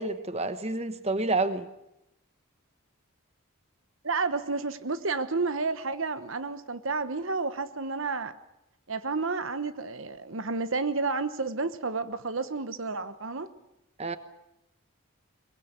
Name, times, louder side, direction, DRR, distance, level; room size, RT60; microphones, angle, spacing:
voice 1, 0.0-1.7 14.0-14.2, right 2 dB, 30° right, 10 dB, 1.2 m, -29 dB
voice 2, 4.0-8.3 8.9-13.5, right 4 dB, 60° right, 11 dB, 1.1 m, -31 dB
22.5 x 21.5 x 8.2 m, 0.87 s
head